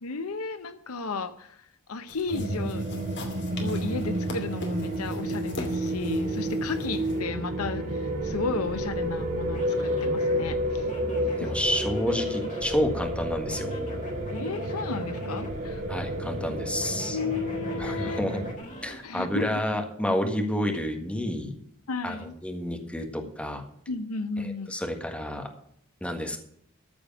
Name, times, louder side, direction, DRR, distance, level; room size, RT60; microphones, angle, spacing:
voice 1, 0.0-2.8 3.6-10.9 11.4-11.5 14.3-15.8 17.1-18.2 19.0-19.5 21.9-22.3 23.9-24.8, left 4 dB, 80° left, 11 dB, 0.8 m, -34 dB
sound 1, 2.1-7.2, left 2 dB, 55° left, 2.5 m, -42 dB
sound 2, 2.3-18.5, right 1 dB, 40° right, 3.9 m, -30 dB
sound 3, 8.2-19.0, equal, 40° left, 3.4 m, -44 dB
voice 2, 11.4-13.7 15.9-17.2 17.8-18.4 18.8-21.5 22.0-22.2 22.4-23.6 24.4-25.5 26.0-26.4, left 1 dB, 5° left, 3 dB, 1.7 m, -29 dB
14.0 x 5.0 x 8.7 m, 0.70 s
head